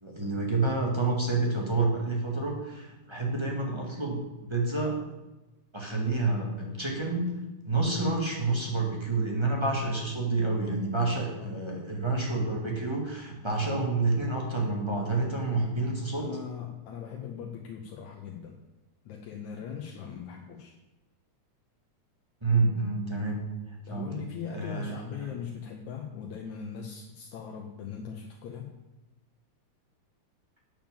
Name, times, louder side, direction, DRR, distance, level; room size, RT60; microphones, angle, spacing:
voice 1, 0.0-5.0 5.7-7.3 7.6-16.2 22.4-23.5 23.9-24.2 24.5-25.3, right 3 dB, 10° right, -1 dB, 1.5 m, -29 dB
voice 2, 11.2-11.6 16.2-18.6 19.1-20.7 23.9-28.7, left 7 dB, 75° left, 1 dB, 2.3 m, -40 dB
9.0 x 7.3 x 7.2 m, 1.0 s
omnidirectional pair, 3.5 m